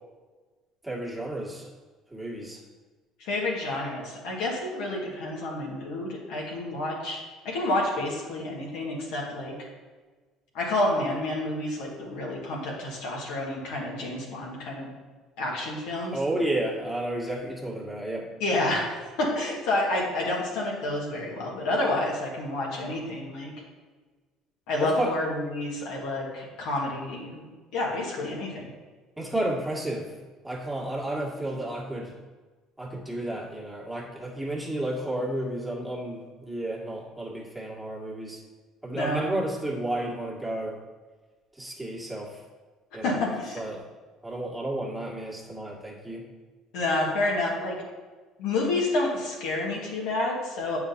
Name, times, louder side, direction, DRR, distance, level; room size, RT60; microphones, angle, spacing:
voice 1, 0.8-1.7 2.1-2.6 16.1-18.3 24.8-25.1 29.2-30.0 30.4-32.1 32.8-38.4 38.8-40.8 41.6-42.4 42.9-43.2 43.5-43.8 44.2-46.3, right 1 dB, 5° right, -4 dB, 1.9 m, -32 dB
voice 2, 3.2-9.7 10.5-14.9 15.4-16.2 18.4-23.5 24.7-27.5 27.7-28.7 38.9-39.2 43.0-43.6 46.7-47.8 48.4-50.8, left 2 dB, 65° left, -2 dB, 1.7 m, -29 dB
8.7 x 4.8 x 2.8 m, 1.3 s
hypercardioid pair, 60°, 0 cm